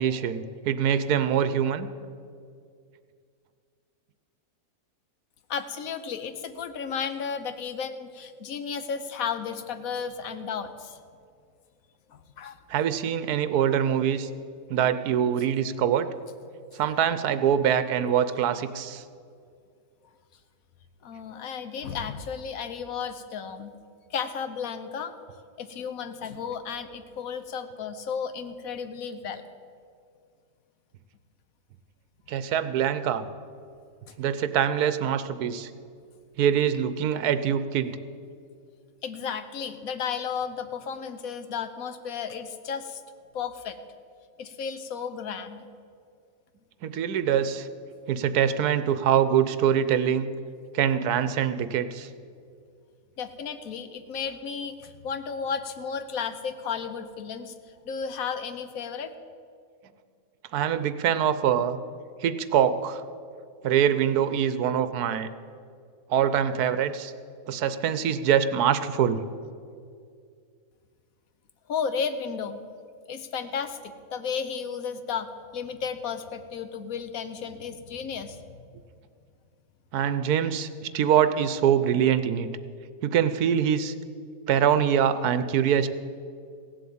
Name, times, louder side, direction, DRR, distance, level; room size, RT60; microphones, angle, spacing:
voice 1, 0.0-1.9 12.7-14.3 14.7-16.1 16.7-19.0 32.3-33.3 34.2-35.7 36.4-38.0 46.8-47.7 48.1-50.3 50.7-52.1 60.5-61.8 62.2-63.0 63.6-65.3 66.1-67.1 67.5-69.2 79.9-82.5 83.0-83.9 84.5-85.9, right 9 dB, 80° right, 12 dB, 1.2 m, -24 dB
voice 2, 5.5-11.0 12.1-12.6 21.0-23.7 24.1-25.1 25.6-29.4 39.0-43.0 43.3-43.8 44.4-45.7 53.2-57.5 57.8-59.1 71.7-72.6 73.1-78.4, left 6 dB, 65° left, 10 dB, 1.3 m, -33 dB
16.0 x 7.8 x 8.6 m, 2.3 s
omnidirectional pair, 1.6 m